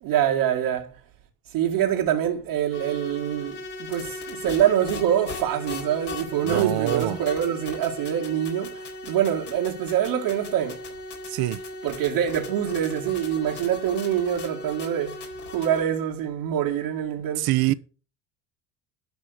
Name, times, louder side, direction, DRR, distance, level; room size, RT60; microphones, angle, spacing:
voice 1, 0.0-1.0 1.5-3.6 3.9-10.8 11.8-15.2 15.5-17.5, right 10 dB, 75° right, 2.0 m, -25 dB
sound 1, 2.7-15.8, left 2 dB, 90° left, 4.3 m, -37 dB
voice 2, 6.4-7.2 11.3-11.6 17.4-17.7, right 17 dB, 55° right, 0.9 m, -25 dB
12.5 x 5.6 x 6.6 m
hypercardioid pair, 70°, 43 cm